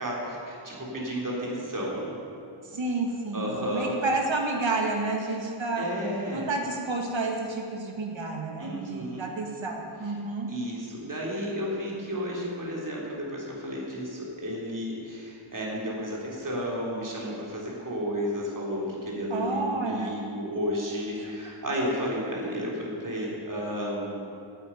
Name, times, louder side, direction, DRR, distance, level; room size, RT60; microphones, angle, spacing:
voice 1, 0.0-2.2 3.3-4.0 5.8-6.5 8.6-9.3 10.5-24.4, equal, 40° right, -4 dB, 3.5 m, -32 dB
voice 2, 2.7-5.9 6.3-10.5 19.3-20.1 21.2-21.3, right 3 dB, 65° right, 1 dB, 2.0 m, -30 dB
10.5 x 8.8 x 9.1 m, 2.6 s
wide cardioid pair, 105°, 49 cm